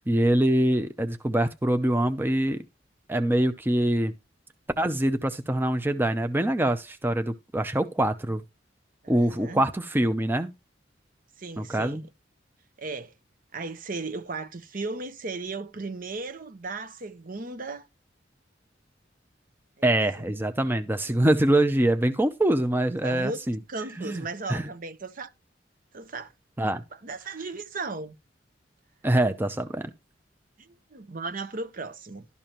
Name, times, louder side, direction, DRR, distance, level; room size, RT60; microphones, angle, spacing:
voice 1, 0.1-2.6 3.1-4.1 4.8-8.4 9.1-10.5 11.6-12.0 19.8-23.6 24.0-24.2 24.5-24.7 26.6-26.8 29.0-29.9, right 1 dB, 10° right, 0.6 m, -24 dB
voice 2, 9.0-9.6 11.4-12.0 12.8-13.1 13.5-17.9 19.8-19.9 20.2-20.4 23.0-23.4 23.7-25.3 25.9-26.3 27.0-28.2 30.6-32.3, right 3 dB, 50° right, 0.9 m, -36 dB
12.5 x 6.9 x 3.0 m
head